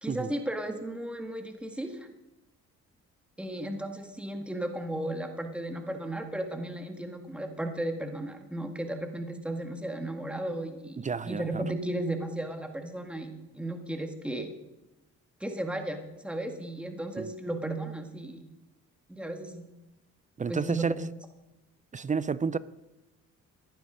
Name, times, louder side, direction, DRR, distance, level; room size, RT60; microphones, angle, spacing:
voice 1, 0.0-2.1 3.4-14.5 15.4-18.4 19.1-19.6 20.5-21.0, right 1 dB, 5° right, 5 dB, 1.8 m, -35 dB
voice 2, 11.0-11.6 17.2-17.3 20.4-21.0 21.9-22.6, right 5 dB, 25° right, 18 dB, 0.5 m, -31 dB
14.5 x 11.0 x 5.1 m, 0.99 s
cardioid pair, 90°, 30 cm